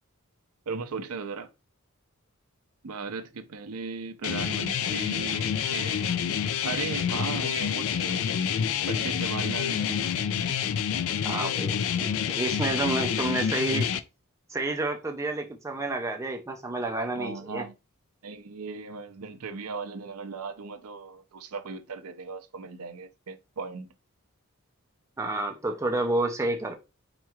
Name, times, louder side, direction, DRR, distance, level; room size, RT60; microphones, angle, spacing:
voice 1, 0.7-1.5 2.8-6.2 6.6-8.3 8.9-10.1 17.1-17.7 18.2-23.9, right 4 dB, 80° right, 0.6 m, -37 dB
sound 1, 4.2-14.0, left 8 dB, 65° left, 0.3 m, -28 dB
voice 2, 11.2-13.9 14.5-17.7 25.2-26.7, right 2 dB, 15° right, 0.4 m, -30 dB
4.3 x 3.0 x 2.3 m
head